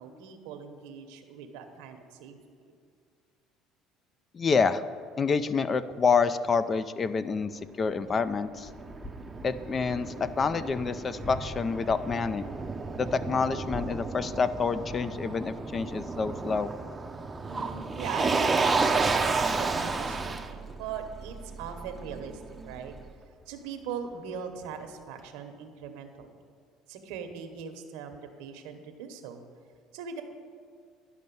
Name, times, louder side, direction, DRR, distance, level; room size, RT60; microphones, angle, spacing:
voice 1, 0.0-2.7 17.5-23.0 23.5-26.3 26.9-29.4 29.9-30.2, right 6 dB, 85° right, 6 dB, 1.0 m, -40 dB
voice 2, 4.3-4.8 5.2-7.5 7.8-8.7 9.4-12.4 13.0-16.7, left 5 dB, 30° left, 13 dB, 0.4 m, -27 dB
Motor vehicle (road), 8.0-23.0, right 4 dB, 20° right, 0.6 m, -32 dB
sound 1, 8.6-16.8, equal, 10° left, 1.3 m, -45 dB
11.0 x 5.3 x 6.9 m, 2.2 s
supercardioid pair, 105°, 0 cm